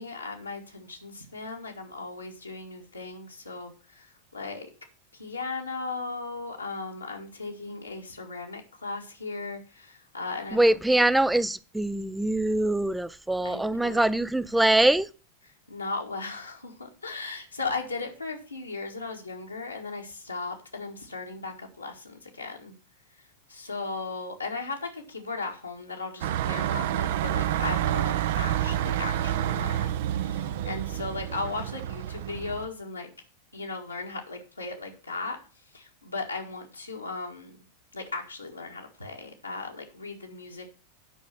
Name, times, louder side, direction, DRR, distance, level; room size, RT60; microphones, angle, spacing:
voice 1, 0.0-4.7 5.1-10.6 13.4-14.1 14.6-14.7 15.7-22.7 23.5-33.1 33.5-35.4 35.7-37.6 37.9-40.7, left 3 dB, 85° left, 1.7 m, -37 dB
voice 2, 10.5-15.1, right 1 dB, 5° right, 0.4 m, -23 dB
sound 1, 26.2-32.7, right 11 dB, 55° right, 0.6 m, -28 dB
9.1 x 5.6 x 5.8 m
figure-of-eight pair, 90°, 0 cm